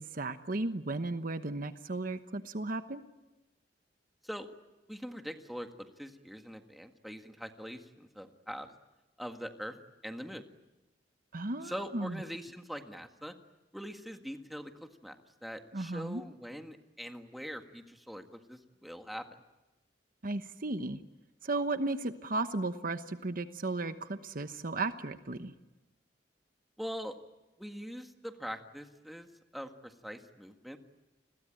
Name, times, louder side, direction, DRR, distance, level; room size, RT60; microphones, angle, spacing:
voice 1, 0.0-3.0 11.3-12.2 15.7-16.2 20.2-21.0 21.4-25.5, right 2 dB, 50° right, 10 dB, 1.1 m, -35 dB
voice 2, 4.9-8.7 9.2-9.8 10.0-10.5 11.6-13.3 13.7-15.2 15.4-19.3 26.8-27.2 27.6-29.3 29.5-30.8, equal, ahead, 5 dB, 1.8 m, -43 dB
30.0 x 21.5 x 9.0 m, 1.0 s
head